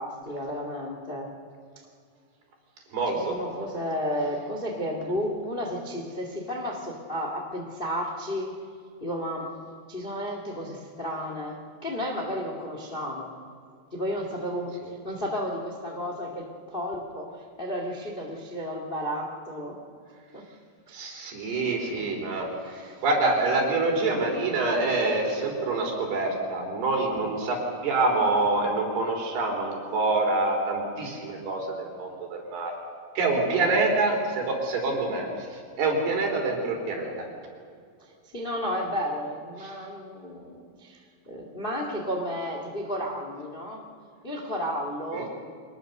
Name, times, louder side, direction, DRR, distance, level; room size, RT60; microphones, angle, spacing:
voice 1, 0.0-1.3 3.1-8.5 9.0-9.5 9.9-13.3 13.9-14.7 15.0-17.3 17.6-19.8 20.3-20.4 21.9-22.2 22.8-23.0 27.2-27.3 33.5-33.8 38.3-41.0 41.2-43.8 44.2-45.3, equal, 25° left, 2 dB, 1.0 m, -32 dB
voice 2, 2.9-3.4 20.9-32.7 33.2-35.3 35.8-37.1 39.6-39.7 45.1-45.3, right 3 dB, 65° right, 1 dB, 5.7 m, -26 dB
24.0 x 20.5 x 6.7 m, 2.2 s
omnidirectional pair, 4.9 m